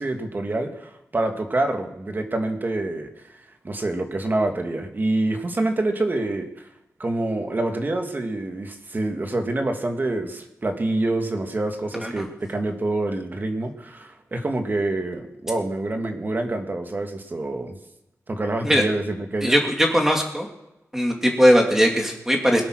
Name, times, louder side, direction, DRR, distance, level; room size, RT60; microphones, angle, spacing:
voice 1, 0.0-3.4 3.6-6.7 7.0-17.8 18.3-19.6, right 2 dB, 35° right, 5 dB, 2.1 m, -26 dB
voice 2, 19.4-20.5 20.9-22.6, equal, 10° right, 2 dB, 2.9 m, -19 dB
21.5 x 8.6 x 6.4 m, 0.91 s
wide cardioid pair, 115°, 5 cm